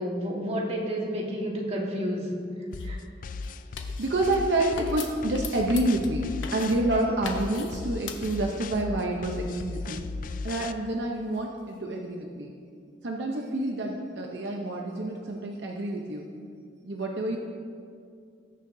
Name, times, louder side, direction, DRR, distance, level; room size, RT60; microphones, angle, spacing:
voice 1, 0.0-2.3 2.8-3.0, equal, 35° right, -2 dB, 1.6 m, -30 dB
sound 1, 2.7-2.9 3.4-4.4 4.8-6.2 6.4-6.8 7.2-7.8 8.1-8.8 10.4-11.8, left 6 dB, 80° left, 0.8 m, -42 dB
sound 2, 2.7-10.7, left 3 dB, 45° left, 0.3 m, -36 dB
voice 2, 4.0-10.0 10.4-12.6 13.0-16.3 16.8-17.4, right 1 dB, 65° right, 0 dB, 0.8 m, -28 dB
19.5 x 6.6 x 2.7 m, 2.3 s
head